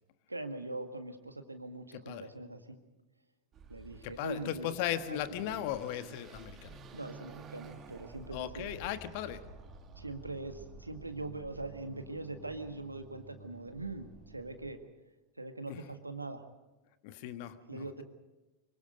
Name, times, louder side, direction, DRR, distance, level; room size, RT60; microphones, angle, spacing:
voice 1, 0.3-2.8 3.7-4.7 5.1-5.2 6.9-8.7 10.0-14.8 15.4-16.4 17.7-18.0, right 2 dB, 85° right, 8 dB, 1.8 m, -42 dB
voice 2, 1.9-2.3 4.0-6.8 8.3-9.4 15.7-15.9 17.0-18.0, left 12 dB, 45° left, 11 dB, 1.4 m, -37 dB
Car passing by / Accelerating revving vroom, 3.5-14.7, right 4 dB, 25° right, 2.2 m, -51 dB
25.5 x 23.5 x 5.2 m, 1.1 s
figure-of-eight pair, 90°, 0 cm